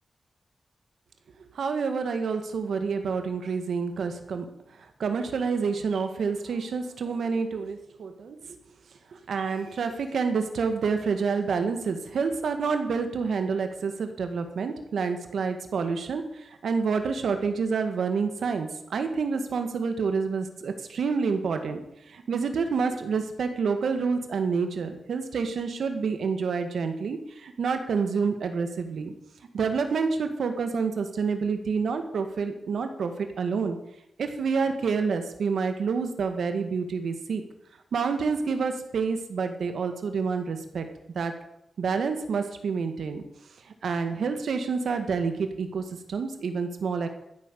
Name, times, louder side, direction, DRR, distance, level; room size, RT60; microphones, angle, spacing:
voice 1, 1.5-4.5 4.8-8.6 9.1-21.8 22.1-29.1 29.5-33.8 34.2-37.4 37.9-40.9 41.2-41.3 41.8-43.2 43.8-47.1, right 5 dB, 85° right, 7 dB, 1.9 m, -28 dB
14.0 x 8.8 x 6.9 m, 0.78 s
wide cardioid pair, 110°, 0 cm